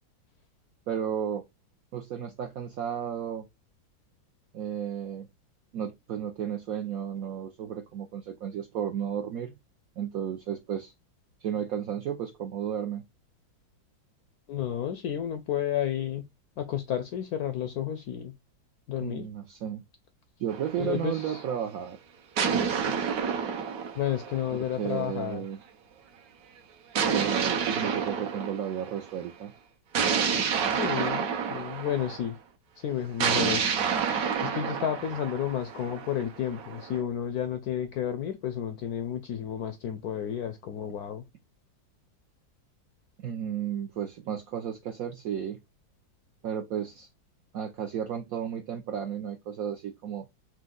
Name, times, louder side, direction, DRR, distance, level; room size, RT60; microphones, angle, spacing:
voice 1, 0.9-1.4 1.9-3.5 4.5-5.3 5.7-9.6 10.0-10.9 11.4-13.0 19.0-19.8 20.4-22.0 24.5-25.6 27.1-29.5 43.2-45.6 46.4-47.1 47.5-50.2, right 9 dB, 75° right, 0.8 m, -33 dB
voice 2, 14.5-16.2 16.6-18.3 18.9-19.3 20.8-21.4 24.0-25.4 30.7-32.4 32.8-33.7 34.4-41.2, left 10 dB, 75° left, 0.8 m, -31 dB
sound 1, 20.5-21.6 22.4-25.0 27.0-29.1 29.9-32.3 33.2-37.0, right 6 dB, 60° right, 1.1 m, -29 dB
4.5 x 2.5 x 3.7 m
omnidirectional pair, 2.1 m